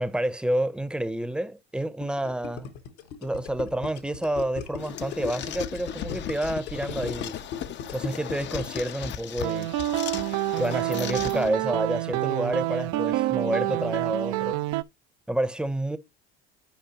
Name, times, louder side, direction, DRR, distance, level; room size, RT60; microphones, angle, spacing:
voice 1, 0.0-2.7 3.2-7.4 7.9-9.8 10.6-14.6 15.3-16.0, right 1 dB, 5° right, 0.6 m, -29 dB
Gurgling, 2.0-9.1, left 7 dB, 75° left, 1.2 m, -37 dB
sound 1, 4.8-11.5, left 10 dB, 40° left, 0.5 m, -37 dB
sound 2, 9.4-14.8, right 15 dB, 70° right, 0.5 m, -27 dB
10.5 x 4.8 x 2.8 m
hypercardioid pair, 80°, 29 cm